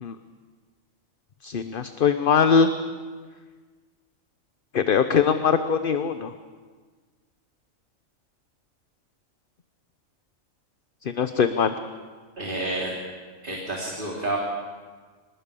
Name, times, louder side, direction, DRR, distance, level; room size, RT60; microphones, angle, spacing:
voice 1, 1.4-2.7 4.7-6.3 11.0-11.7, left 6 dB, 45° left, 9 dB, 0.9 m, -21 dB
voice 2, 12.4-12.9 13.4-14.4, right 2 dB, 40° right, -3 dB, 3.3 m, -29 dB
25.5 x 19.5 x 6.9 m, 1.5 s
omnidirectional pair, 1.4 m